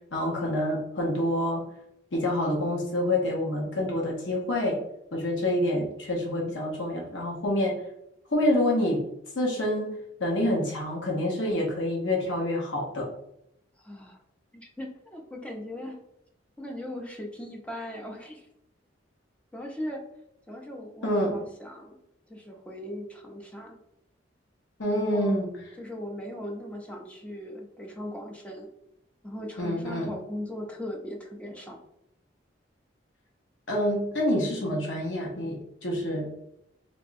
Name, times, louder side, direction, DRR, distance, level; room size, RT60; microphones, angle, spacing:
voice 1, 0.1-1.6 2.1-4.8 5.1-7.8 8.3-9.0 9.3-9.9 10.2-13.1 21.0-21.3 24.8-25.6 29.6-30.1 33.7-36.3, left 1 dB, 80° left, -2 dB, 0.8 m, -27 dB
voice 2, 13.8-14.2 14.5-16.0 16.6-18.5 19.5-20.0 20.5-22.0 22.3-23.8 25.1-25.4 25.8-28.7 29.2-31.8, left 1 dB, 5° left, 0 dB, 0.6 m, -38 dB
3.4 x 2.9 x 2.5 m, 0.81 s
head